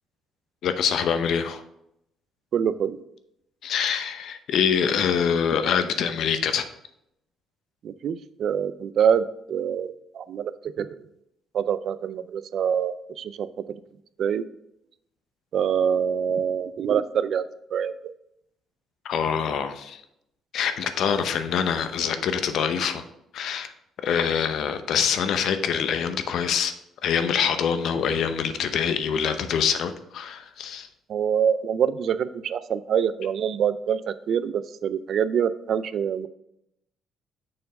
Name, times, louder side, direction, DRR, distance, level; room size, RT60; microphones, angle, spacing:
voice 1, 0.6-1.6 3.6-6.6 19.0-20.0 20.5-23.0 23.3-23.7 24.0-26.7 27.0-30.9, left 7 dB, 60° left, 9 dB, 0.6 m, -25 dB
voice 2, 2.5-3.0 7.8-10.5 10.8-10.9 11.5-13.5 14.2-14.4 15.5-17.5 17.7-18.1 31.1-36.3, right 8 dB, 55° right, 14 dB, 0.4 m, -25 dB
6.5 x 4.5 x 5.3 m, 0.79 s
cardioid pair, 130°, 0 cm